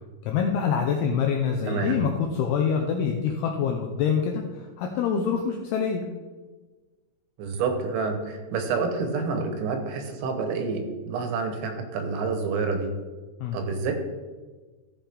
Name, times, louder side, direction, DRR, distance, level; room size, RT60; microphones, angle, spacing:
voice 1, 0.2-6.0 13.4-13.6, left 6 dB, 90° left, 2 dB, 2.3 m, -25 dB
voice 2, 7.4-12.9 13.5-13.9, right 4 dB, 75° right, 5 dB, 3.3 m, -28 dB
15.0 x 5.8 x 3.5 m, 1.3 s
omnidirectional pair, 5.4 m